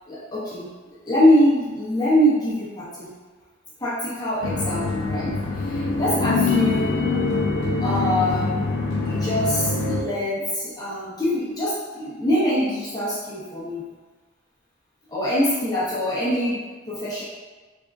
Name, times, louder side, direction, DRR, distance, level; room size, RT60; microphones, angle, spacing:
voice 1, 0.1-0.7 1.1-3.1 3.8-7.1 7.8-8.7 9.0-13.8 15.1-16.6 16.9-17.2, equal, 20° left, -9 dB, 0.8 m, -23 dB
sound 1, 4.4-10.0, left 3 dB, 80° left, 0.5 m, -24 dB
3.5 x 3.5 x 2.5 m, 1.3 s
head